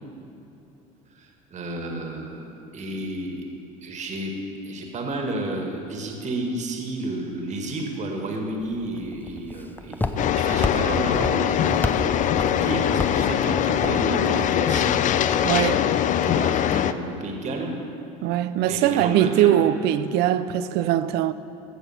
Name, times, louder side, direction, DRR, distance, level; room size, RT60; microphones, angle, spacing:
voice 1, 1.1-3.4 3.8-4.3 4.6-15.8 16.2-17.8 18.6-19.5, right 2 dB, 40° right, 1.9 m, -32 dB
Walk footsteps, 8.6-14.8, left 2 dB, 10° left, 0.7 m, -32 dB
sound 1, 10.2-16.9, left 10 dB, 45° left, 0.5 m, -22 dB
voice 2, 15.4-15.9 18.2-21.3, right 12 dB, 65° right, 0.5 m, -21 dB
15.5 x 6.7 x 5.8 m
supercardioid pair, 85°, 18 cm